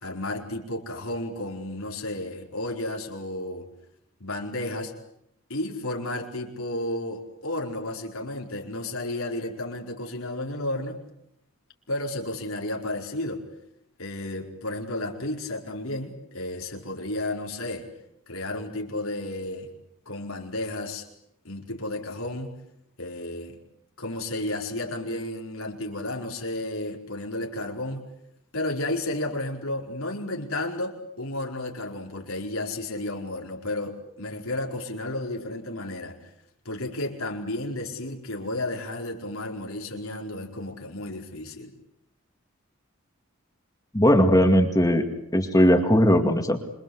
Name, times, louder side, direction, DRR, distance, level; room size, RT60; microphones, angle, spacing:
voice 1, 0.0-3.7 4.2-4.9 5.5-11.0 11.9-13.4 14.0-17.9 18.3-19.7 20.0-21.1 21.4-22.5 23.0-23.6 24.0-28.1 28.5-36.3 36.6-41.7, left 1 dB, 80° left, 1 dB, 4.8 m, -32 dB
voice 2, 43.9-45.0 45.3-46.6, equal, 15° left, 4 dB, 2.3 m, -18 dB
27.0 x 24.5 x 8.1 m, 0.77 s
head